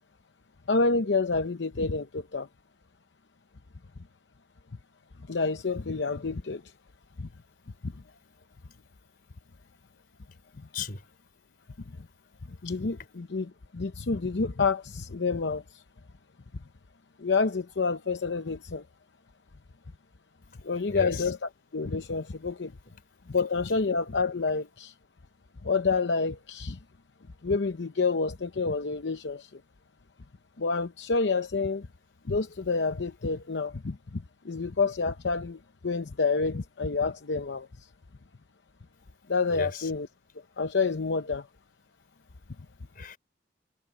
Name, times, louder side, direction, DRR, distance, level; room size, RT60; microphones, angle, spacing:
voice 1, 0.7-2.5 5.3-6.6 7.2-7.3 7.8-7.9 12.6-13.5 13.7-15.6 17.2-18.8 20.6-21.4 21.7-22.7 23.3-24.9 25.6-26.8 27.4-29.5 30.6-31.9 32.3-34.0 34.4-37.7 39.3-40.1 40.6-41.4, left 4 dB, 80° left, 0.8 m, -28 dB
voice 2, 10.7-11.1 20.5-21.3 22.9-23.0 39.5-39.9 42.9-43.2, left 4 dB, 55° left, 4.2 m, -37 dB
head